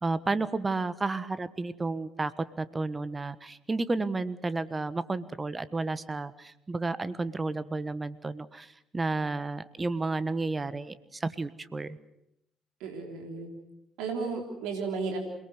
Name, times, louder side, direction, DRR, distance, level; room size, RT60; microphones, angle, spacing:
voice 1, 0.0-12.0, right 3 dB, 25° right, 15 dB, 1.3 m, -32 dB
voice 2, 12.8-13.5 14.0-15.2, right 4 dB, 70° right, 3 dB, 3.7 m, -33 dB
28.0 x 18.5 x 8.1 m, 0.80 s
hypercardioid pair, 50°, 0 cm